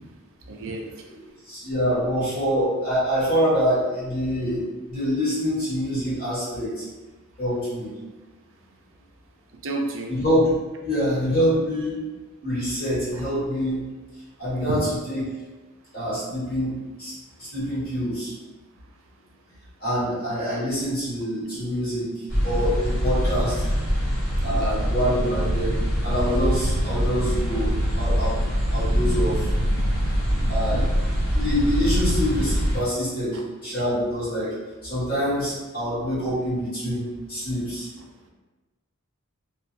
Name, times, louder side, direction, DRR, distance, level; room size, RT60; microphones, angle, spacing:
voice 1, 0.5-1.0 9.6-10.1 14.7-14.8 21.5-21.6 24.4-24.9 30.7-30.8, right 2 dB, 60° right, 1 dB, 0.4 m, -31 dB
voice 2, 1.4-6.8 7.4-7.9 10.1-10.6 10.8-12.0 12.4-13.8 14.4-15.2 15.9-17.1 17.4-18.3 19.8-23.5 24.4-25.7 26.0-28.4 28.7-29.5 30.5-30.8 31.3-34.5 34.8-37.9, equal, 45° left, -9 dB, 1.4 m, -25 dB
sound 1, 22.3-32.8, equal, 65° left, 1.4 m, -23 dB
2.7 x 2.3 x 2.4 m, 1.2 s
head